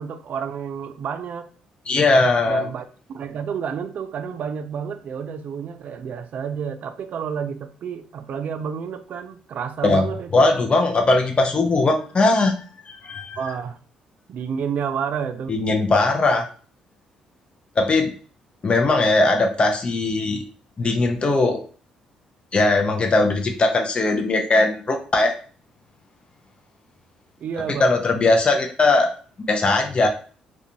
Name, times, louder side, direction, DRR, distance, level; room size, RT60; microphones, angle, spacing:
voice 1, 0.0-1.5 2.4-10.5 13.4-13.8 14.3-15.6 27.4-27.9, right 7 dB, 55° right, 9 dB, 0.3 m, -30 dB
voice 2, 1.9-2.6 9.8-10.0 10.3-12.5 12.9-13.4 15.5-16.4 17.8-18.1 18.6-20.4 20.8-21.6 22.5-25.3 27.8-29.1 29.4-30.1, left 2 dB, 35° left, 3 dB, 0.5 m, -19 dB
2.4 x 2.3 x 2.8 m, 0.40 s
hypercardioid pair, 50°, 3 cm